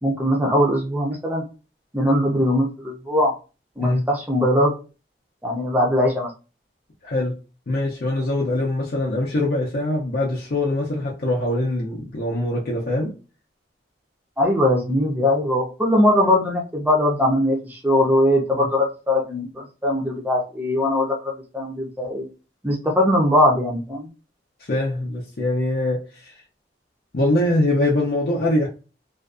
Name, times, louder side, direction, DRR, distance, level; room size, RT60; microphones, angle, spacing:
voice 1, 0.0-1.4 1.9-3.3 3.8-4.7 5.4-6.3 14.4-22.3 22.6-24.1, left 1 dB, 10° right, 0.5 m, -20 dB
voice 2, 7.0-7.4 7.7-13.1 18.6-18.7 24.6-26.4 27.1-28.7, left 1 dB, 55° left, 0.5 m, -23 dB
2.5 x 2.2 x 2.4 m
head